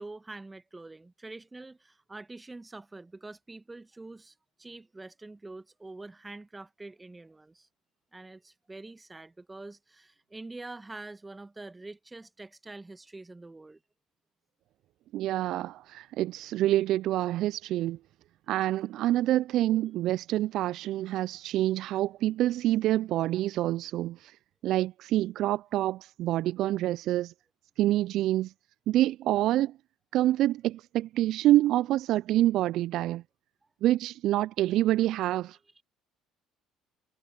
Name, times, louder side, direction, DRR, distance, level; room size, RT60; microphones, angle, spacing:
voice 1, 0.0-7.7 8.1-13.8 35.8-35.9, right 2 dB, 15° right, 1.3 m, -45 dB
voice 2, 15.1-18.0 18.5-24.4 24.6-27.3 27.8-28.5 28.9-29.8 30.1-33.2 33.8-35.6, right 14 dB, 65° right, 0.3 m, -27 dB
hypercardioid pair, 65°, 0 cm